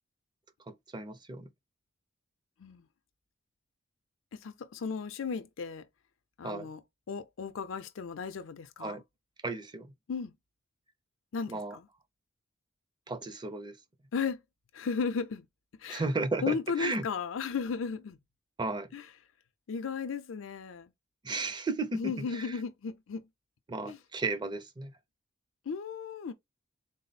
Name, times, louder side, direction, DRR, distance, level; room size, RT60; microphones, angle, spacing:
voice 1, 0.7-1.5 6.4-6.7 8.8-9.0 9.4-9.9 11.5-11.8 13.1-13.8 15.9-17.1 18.6-18.9 21.2-22.6 23.7-24.9, right 3 dB, 25° right, 0.5 m, -34 dB
voice 2, 4.4-5.9 6.4-6.8 7.1-9.0 10.1-10.3 11.3-11.9 14.1-14.4 14.7-15.5 15.8-16.0 16.4-18.2 18.9-19.0 19.7-20.9 21.9-23.2 23.8-24.0 25.7-26.3, left 5 dB, 90° left, 0.5 m, -35 dB
3.8 x 2.0 x 4.0 m
head